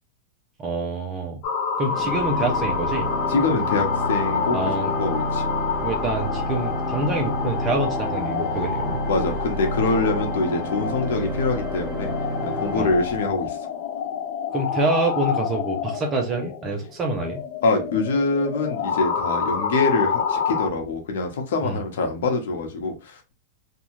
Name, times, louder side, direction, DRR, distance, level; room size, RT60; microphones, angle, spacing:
voice 1, 0.6-1.4 1.8-3.1 4.5-4.9 5.8-9.0 12.7-12.9 14.5-17.4 21.6-21.8, right 2 dB, 25° right, 3 dB, 0.5 m, -26 dB
sound 1, 1.4-20.7, left 6 dB, 50° left, 0.8 m, -28 dB
Organ, 1.9-13.7, right 1 dB, 10° left, 0.8 m, -30 dB
voice 2, 3.3-4.6 4.9-5.4 9.1-12.1 12.4-13.6 17.6-23.3, left 3 dB, 75° left, 4 dB, 0.9 m, -24 dB
2.6 x 2.3 x 3.0 m, 0.29 s
supercardioid pair, 145°, 0 cm